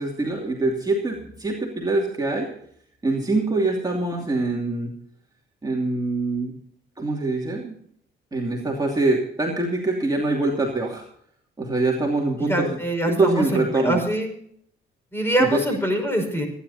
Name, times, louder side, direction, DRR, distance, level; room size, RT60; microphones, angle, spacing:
voice 1, 0.0-2.5 3.0-4.9 5.6-6.5 7.0-7.7 8.3-11.0 11.6-12.8 13.0-14.0 15.4-15.6, right 2 dB, 20° right, -2 dB, 2.7 m, -24 dB
voice 2, 12.5-14.3 15.1-16.5, right 1 dB, 10° left, 4 dB, 5.8 m, -24 dB
26.5 x 10.5 x 2.8 m, 0.66 s
cardioid pair, 90°, 20 cm